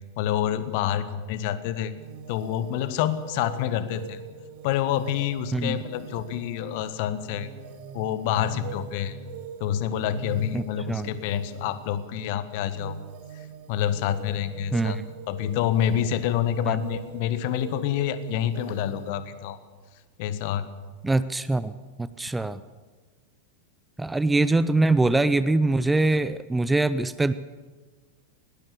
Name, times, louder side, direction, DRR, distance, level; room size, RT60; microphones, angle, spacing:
voice 1, 0.2-1.9 2.3-4.2 4.6-7.5 7.9-9.2 9.6-12.9 13.7-15.0 15.3-19.6 20.2-20.7, left 10 dB, 50° left, 13 dB, 1.5 m, -27 dB
sound 1, 2.0-19.1, right 6 dB, 50° right, 1.9 m, -43 dB
voice 2, 10.5-11.1 14.7-15.1 16.6-16.8 21.0-21.7 22.0-22.6 24.0-27.3, right 2 dB, 5° right, 15 dB, 0.6 m, -23 dB
21.5 x 18.5 x 7.0 m, 1.3 s
figure-of-eight pair, 90°, 0 cm